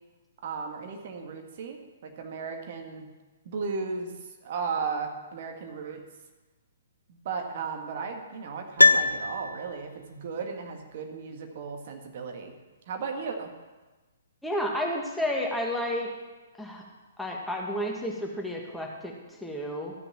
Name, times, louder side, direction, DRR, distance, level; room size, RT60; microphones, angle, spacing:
voice 1, 0.4-3.1 3.5-6.0 7.1-12.6 12.9-13.5, right 5 dB, 45° right, 3 dB, 1.7 m, -35 dB
Piano, 8.8-10.0 10.3-10.4, left 3 dB, 85° left, 0.4 m, -22 dB
voice 2, 14.4-16.1 16.6-16.8 17.2-19.9, left 1 dB, 5° left, -1 dB, 1.7 m, -31 dB
14.0 x 6.7 x 7.6 m, 1.2 s
figure-of-eight pair, 120°, 0 cm